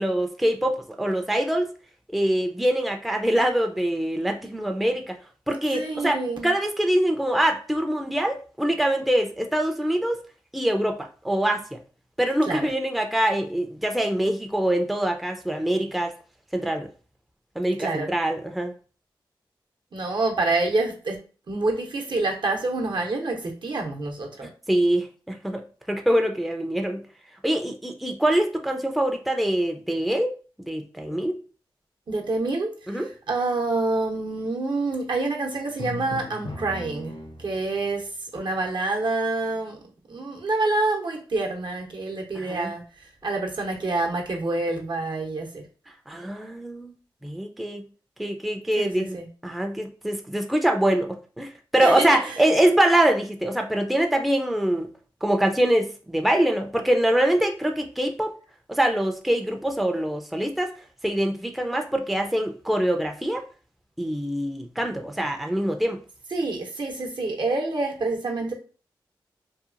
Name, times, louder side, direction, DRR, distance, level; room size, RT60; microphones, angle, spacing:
voice 1, 0.0-1.7 2.1-5.1 5.5-6.2 6.4-10.2 10.5-11.8 12.2-16.1 16.5-16.9 17.6-18.7 24.7-25.6 25.9-27.0 27.4-31.4 32.9-33.1 42.3-42.7 46.1-46.9 47.2-47.8 48.2-49.2 49.4-54.9 55.2-58.3 58.7-60.7 61.0-63.4 64.0-66.0, right 1 dB, ahead, 3 dB, 0.4 m, -24 dB
voice 2, 5.7-6.5 12.5-12.6 17.8-18.1 19.9-21.2 21.5-24.5 32.1-37.1 37.4-38.0 38.3-39.8 40.1-42.8 43.2-45.6 48.8-49.3 51.8-52.4 66.3-68.5, right 2 dB, 60° right, 2 dB, 0.7 m, -27 dB
Drum, 35.8-37.8, left 2 dB, 65° left, 0.6 m, -36 dB
2.7 x 2.4 x 2.5 m, 0.37 s
cardioid pair, 40°, 9 cm